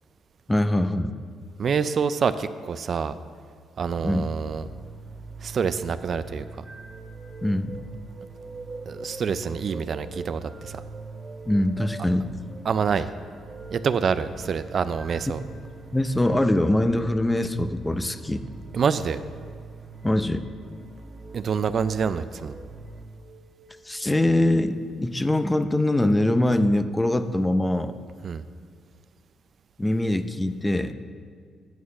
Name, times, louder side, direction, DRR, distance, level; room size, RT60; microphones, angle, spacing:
voice 1, 0.5-1.1 4.0-4.3 7.4-7.8 11.5-12.3 15.9-18.4 20.0-20.4 23.9-27.9 29.8-30.9, left 1 dB, 10° left, 10 dB, 0.6 m, -23 dB
voice 2, 1.6-3.2 3.8-4.7 5.4-6.4 8.9-10.8 12.7-13.1 13.7-15.4 18.7-19.2 21.3-22.5 28.2-28.4, right 6 dB, 50° right, 12 dB, 0.4 m, -26 dB
sound 1, 3.8-23.1, right 4 dB, 10° right, 1.5 m, -43 dB
sound 2, 5.9-15.9 16.6-16.9 18.9-19.2 20.0-20.5 21.1-21.4 22.2-22.7 23.1-24.2, right 3 dB, 30° right, 2.2 m, -45 dB
9.3 x 6.4 x 7.0 m, 2.1 s
cardioid pair, 90°, 0 cm